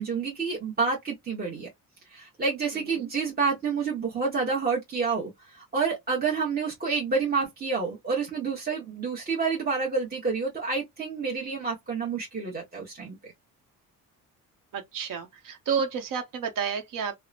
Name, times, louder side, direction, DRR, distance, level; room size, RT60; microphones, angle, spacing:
voice 1, 0.0-1.7 2.1-13.3, right 5 dB, 25° right, 1.0 m, -29 dB
voice 2, 2.7-3.1 14.7-17.2, right 6 dB, 65° right, 0.9 m, -31 dB
2.8 x 2.1 x 2.4 m
cardioid pair, 80°, 35 cm